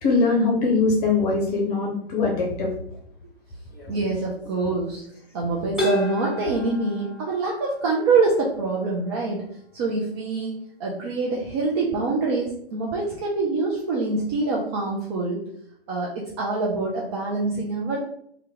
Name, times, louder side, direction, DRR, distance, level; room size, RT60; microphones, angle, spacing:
voice 1, 0.0-2.7, left 3 dB, 40° left, -2 dB, 0.8 m, -21 dB
sound 1, 3.7-4.0 4.3-4.7 5.8-7.9, left 2 dB, ahead, 1.2 m, -29 dB
voice 2, 3.9-5.0 5.3-9.4 9.7-15.4 15.9-18.0, right 3 dB, 25° right, -3 dB, 0.5 m, -25 dB
2.8 x 2.3 x 3.5 m, 0.68 s
figure-of-eight pair, 115°, 31 cm